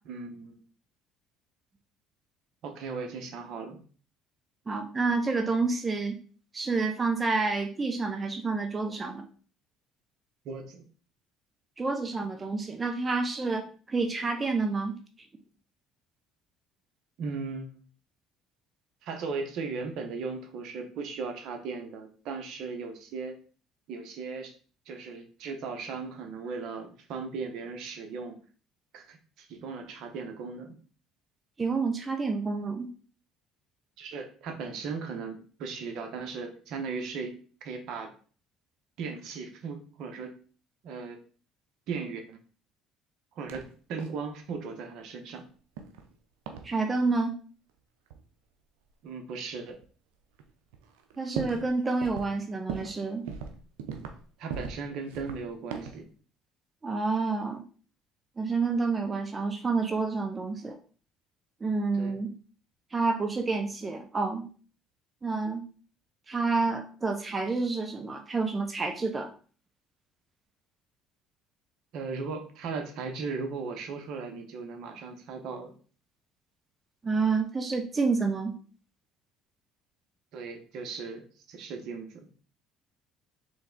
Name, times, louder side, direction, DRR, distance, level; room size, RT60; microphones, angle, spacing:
voice 1, 0.0-0.6 2.6-3.8 10.4-10.8 17.2-17.8 19.0-23.4 23.9-24.5 24.8-28.4 28.9-30.8 34.0-37.4 37.6-38.1 39.0-40.4 40.8-41.2 41.9-42.4 43.3-45.4 49.0-49.8 54.4-56.1 61.9-62.2 71.9-75.7 80.3-82.3, right 4 dB, 70° right, 4 dB, 1.0 m, -37 dB
voice 2, 4.7-6.2 6.5-9.3 11.8-15.0 31.6-32.9 46.6-47.4 51.2-53.3 56.8-57.6 58.4-60.8 61.6-62.3 62.9-64.5 65.2-65.6 66.3-69.3 77.0-78.6, right 4 dB, 25° right, 5 dB, 0.6 m, -29 dB
sound 1, 43.5-43.7 44.0-44.3 45.8-46.1 46.5-46.7 48.1-48.2 49.1-49.2 49.8-49.9 50.4-50.5 50.7-51.7 52.0-52.3 52.7-53.0 53.3-54.2 54.5-54.8 55.1-56.0, right 6 dB, 90° right, 0.6 m, -38 dB
3.8 x 3.4 x 3.8 m, 0.40 s
supercardioid pair, 90°, 0 cm